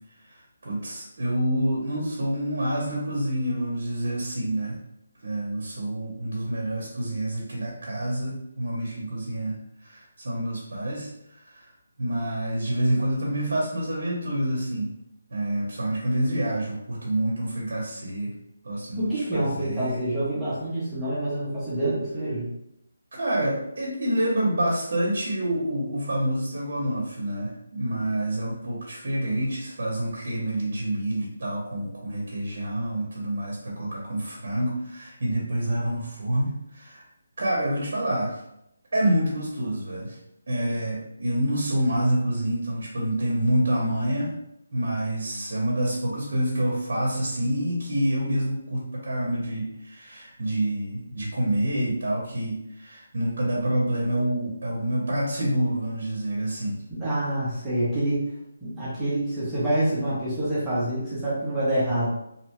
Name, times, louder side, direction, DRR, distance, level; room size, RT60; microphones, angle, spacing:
voice 1, 0.2-4.8 5.2-11.7 12.0-14.9 15.3-18.3 18.6-20.0 23.1-37.1 37.4-38.4 38.9-40.2 40.5-44.3 44.7-56.8, right 1 dB, 45° right, -4 dB, 0.7 m, -27 dB
voice 2, 19.0-22.5 56.9-58.3 58.6-62.1, right 1 dB, 5° right, -12 dB, 0.5 m, -27 dB
2.7 x 2.1 x 2.8 m, 0.80 s
hypercardioid pair, 180°, 0 cm